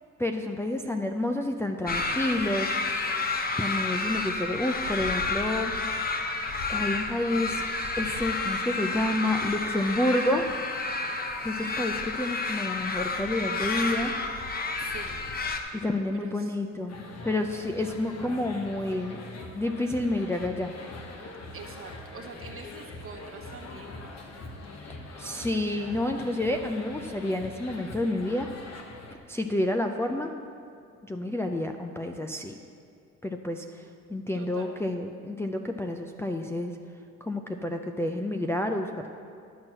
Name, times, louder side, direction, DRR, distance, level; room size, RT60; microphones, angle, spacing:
voice 1, 0.2-2.7 3.6-5.7 6.7-7.6 8.0-10.5 11.4-14.1 15.8-17.0 17.2-19.2 19.5-20.7 25.2-28.5 29.3-30.3 31.0-32.5 33.2-33.8 34.1-36.7 37.2-39.1, left 1 dB, 10° left, 3 dB, 0.4 m, -29 dB
sound 1, 1.9-15.6, left 3 dB, 30° left, 0.9 m, -30 dB
voice 2, 14.8-15.2 16.2-16.6 21.5-24.1 34.3-34.8, right 4 dB, 45° right, 2 dB, 1.3 m, -44 dB
sound 2, 16.9-29.2, left 2 dB, 60° left, 1.2 m, -43 dB
11.0 x 4.5 x 7.6 m, 2.3 s
cardioid pair, 90°, 30 cm